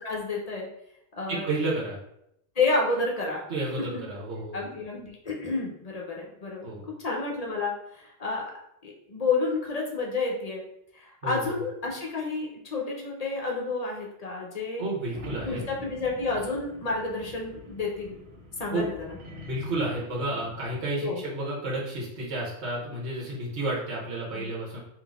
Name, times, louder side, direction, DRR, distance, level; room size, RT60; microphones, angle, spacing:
voice 1, 0.0-0.7 1.2-1.4 2.6-3.4 3.9-4.0 4.5-6.7 7.0-8.4 8.8-10.6 10.9-14.8 15.4-18.2 18.6-19.1 21.0-21.2 24.3-24.5, left 3 dB, 40° left, -1 dB, 0.8 m, -30 dB
voice 2, 1.3-2.0 3.5-4.6 6.6-6.8 11.2-11.6 14.8-15.6 18.7-18.9 19.4-24.8, right 2 dB, 85° right, -5 dB, 1.3 m, -31 dB
sound 1, 15.1-20.8, left 2 dB, 65° right, 1.0 m, -45 dB
3.8 x 2.7 x 3.5 m, 0.78 s
omnidirectional pair, 1.1 m